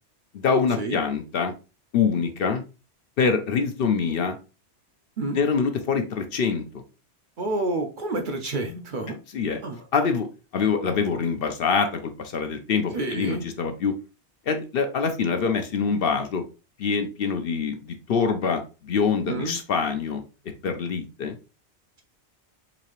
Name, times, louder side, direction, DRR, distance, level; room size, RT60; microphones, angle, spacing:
voice 1, 0.3-1.5 1.9-2.6 3.2-4.4 5.3-6.8 9.3-9.6 9.9-10.3 10.5-14.0 14.5-16.4 16.8-20.2 20.6-21.4, left 5 dB, 60° left, 6 dB, 0.7 m, -25 dB
voice 2, 7.4-9.2 9.6-9.9 12.9-13.4 19.3-19.5, right 2 dB, 55° right, 4 dB, 0.7 m, -29 dB
4.0 x 2.8 x 2.9 m, 0.31 s
omnidirectional pair, 1.2 m